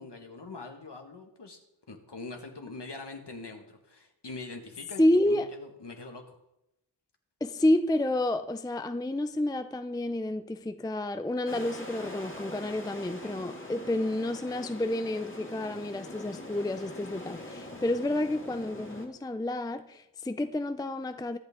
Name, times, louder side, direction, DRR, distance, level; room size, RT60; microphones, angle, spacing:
voice 1, 0.0-1.6 1.9-6.3 13.2-13.3, left 3 dB, 60° left, 1.9 m, -43 dB
voice 2, 5.0-5.5 7.4-21.4, left 1 dB, 10° left, 0.5 m, -29 dB
sound 1, 11.5-19.1, left 1 dB, 25° left, 2.3 m, -43 dB
23.0 x 8.5 x 3.7 m
wide cardioid pair, 75°, 47 cm